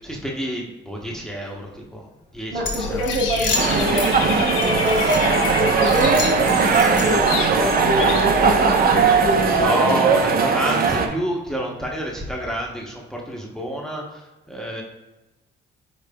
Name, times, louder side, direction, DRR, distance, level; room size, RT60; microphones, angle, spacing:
voice 1, 0.0-2.1 2.3-3.7 9.6-14.8, equal, ahead, -1 dB, 0.8 m, -28 dB
voice 2, 2.5-10.1, equal, 65° right, -1 dB, 1.2 m, -26 dB
Dog / Bird, 2.6-9.7, left 5 dB, 80° left, 1.0 m, -29 dB
sound 1, 2.6-4.1 4.6-5.5 5.8-7.3, left 3 dB, 65° left, 1.3 m, -30 dB
sound 2, 3.5-11.1, right 5 dB, 50° right, 0.5 m, -19 dB
5.0 x 4.2 x 2.2 m, 1.1 s
cardioid pair, 90°, 20 cm